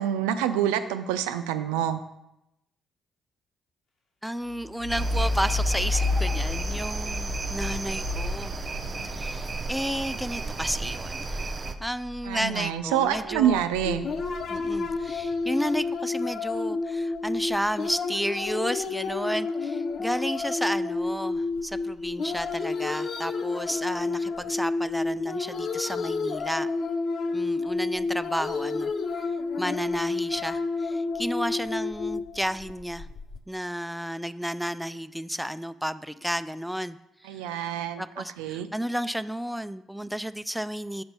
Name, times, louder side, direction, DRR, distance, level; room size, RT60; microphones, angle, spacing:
voice 1, 0.0-2.0 12.2-14.0 37.2-38.0 38.4-38.7, right 10 dB, 80° right, 10 dB, 0.4 m, -26 dB
voice 2, 4.2-8.6 9.1-13.6 14.5-26.7 27.3-28.9 29.6-33.1 33.5-37.0 37.2-37.7 38.0-41.0, equal, ahead, 13 dB, 0.3 m, -32 dB
sound 1, 4.4-12.7 13.1-15.7, left 2 dB, 70° left, 2.0 m, -32 dB
sound 2, 4.9-11.8, right 3 dB, 40° right, 0.6 m, -34 dB
sound 3, 13.8-33.4, left 3 dB, 55° left, 0.6 m, -30 dB
6.7 x 5.3 x 4.4 m, 0.87 s
hypercardioid pair, 45°, 0 cm